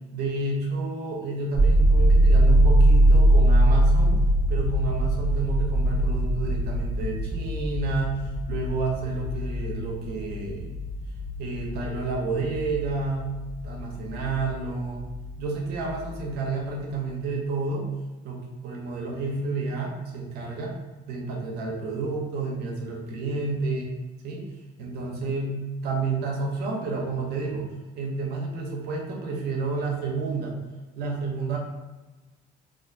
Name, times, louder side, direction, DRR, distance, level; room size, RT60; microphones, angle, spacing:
voice 1, 0.1-4.2 4.5-10.7 11.4-13.3 13.6-15.0 15.4-17.9 18.2-20.7 21.1-23.9 24.2-24.4 24.8-27.7 28.0-30.5 31.0-31.6, right 3 dB, 70° right, 0 dB, 0.6 m, -30 dB
sound 1, 1.5-15.3 15.7-16.6, right 1 dB, 25° right, 0.4 m, -22 dB
2.4 x 2.1 x 2.5 m, 1.2 s
cardioid pair, 110°, 17 cm